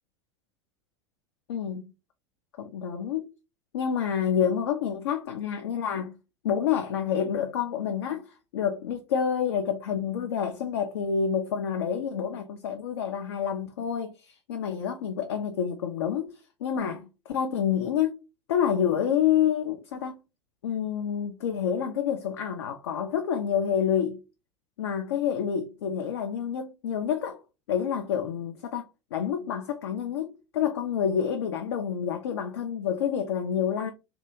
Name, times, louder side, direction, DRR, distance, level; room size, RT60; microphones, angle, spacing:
voice 1, 1.5-1.8 2.6-3.3 3.7-6.2 6.4-18.2 18.5-20.2 20.6-24.2 24.8-27.4 27.7-33.9, left 8 dB, 65° left, 0.4 m, -28 dB
3.3 x 2.3 x 2.9 m
figure-of-eight pair, 80°, 15 cm